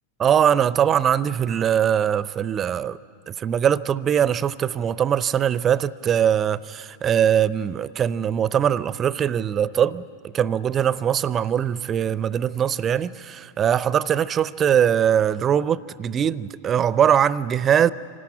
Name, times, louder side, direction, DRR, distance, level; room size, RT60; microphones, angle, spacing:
voice 1, 0.2-3.0 3.3-17.9, right 9 dB, 25° right, 0.5 m, -21 dB
25.5 x 17.5 x 10.0 m
figure-of-eight pair, 90°, 0 cm